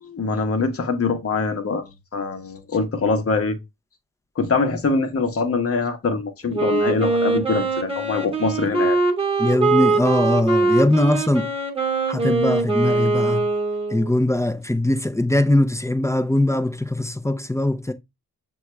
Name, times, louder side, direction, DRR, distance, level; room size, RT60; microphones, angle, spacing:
voice 1, 0.0-3.6 4.4-9.0, left 4 dB, 40° left, 0.9 m, -23 dB
Wind instrument woodwind instrument, 6.5-14.2, right 3 dB, 15° right, 1.2 m, -22 dB
voice 2, 9.4-11.5 12.1-13.5 13.9-17.9, left 1 dB, 10° left, 0.5 m, -21 dB
6.3 x 2.3 x 3.0 m
cardioid pair, 65°, 36 cm